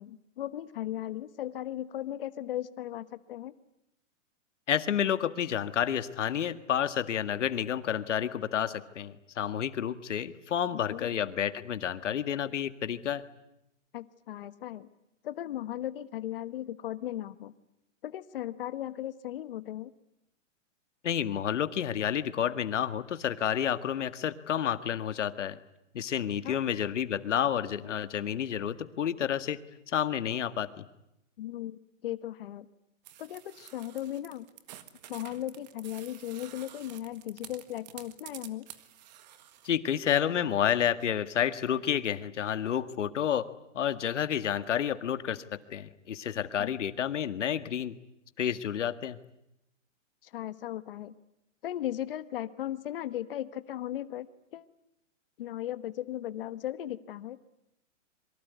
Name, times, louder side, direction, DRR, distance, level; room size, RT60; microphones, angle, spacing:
voice 1, 0.0-3.5 10.9-11.1 13.9-14.9 15.2-17.5 18.0-19.9 26.4-26.6 31.4-32.7 33.2-34.5 35.1-38.7 46.6-46.7 50.2-51.1 51.6-54.3 54.5-54.7 55.4-57.4, left 12 dB, 45° left, 13 dB, 1.3 m, -37 dB
voice 2, 4.7-13.2 21.0-25.6 25.9-29.6 29.9-30.8 39.6-43.5 43.7-45.4 45.7-48.0 48.4-49.2, left 9 dB, 70° left, 11 dB, 1.9 m, -30 dB
sound 1, 33.0-39.7, right 12 dB, 35° right, 1.8 m, -50 dB
26.5 x 23.5 x 9.5 m, 0.85 s
hypercardioid pair, 165°, 38 cm